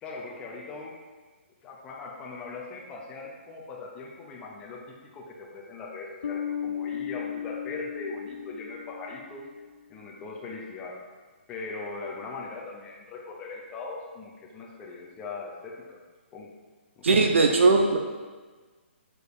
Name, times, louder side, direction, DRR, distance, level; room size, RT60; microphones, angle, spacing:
voice 1, 0.0-0.9 1.6-4.8 5.1-9.4 9.9-11.0 11.5-16.0 16.3-16.5 17.0-17.1, left 3 dB, 10° left, -2 dB, 0.5 m, -40 dB
Bass guitar, 6.2-9.7, left 8 dB, 65° left, 0.4 m, -35 dB
voice 2, 17.0-18.0, right 3 dB, 70° right, 3 dB, 0.8 m, -19 dB
4.8 x 4.8 x 4.9 m, 1.4 s
hypercardioid pair, 165°, 7 cm